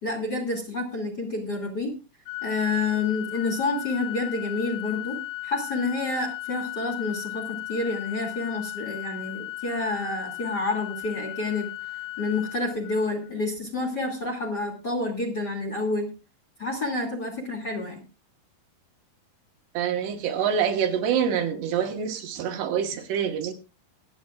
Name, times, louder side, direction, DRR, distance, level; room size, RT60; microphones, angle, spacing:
voice 1, 0.0-1.9 2.4-11.7 12.2-16.1 16.6-18.0, left 3 dB, 30° left, 0 dB, 2.5 m, -29 dB
Organ, 2.3-13.3, left 19 dB, 70° left, 2.7 m, -36 dB
voice 2, 19.8-23.5, right 8 dB, 80° right, 4 dB, 3.6 m, -26 dB
25.0 x 9.2 x 2.4 m, 0.30 s
omnidirectional pair, 4.9 m